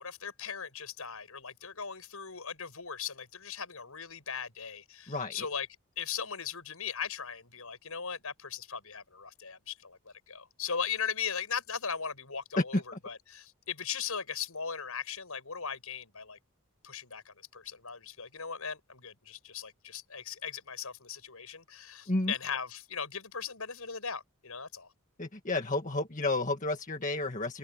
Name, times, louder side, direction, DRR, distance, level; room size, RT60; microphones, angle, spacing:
voice 1, 0.0-5.7 6.0-10.0 10.3-16.4 16.8-24.9, left 7 dB, 85° left, 6.1 m, -38 dB
voice 2, 5.1-5.5 12.6-12.8 22.1-22.3 25.2-27.6, left 2 dB, 35° left, 1.8 m, -31 dB
head